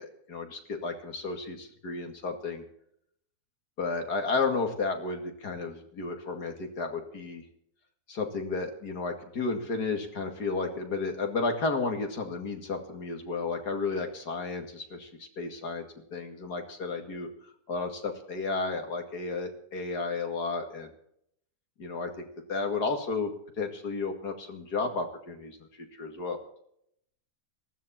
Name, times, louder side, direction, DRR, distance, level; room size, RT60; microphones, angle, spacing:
voice 1, 0.0-2.6 3.8-7.4 8.1-20.9 21.8-23.3 23.6-26.4, left 4 dB, 85° left, 5 dB, 2.8 m, -33 dB
18.5 x 13.5 x 4.3 m, 0.71 s
omnidirectional pair, 1.7 m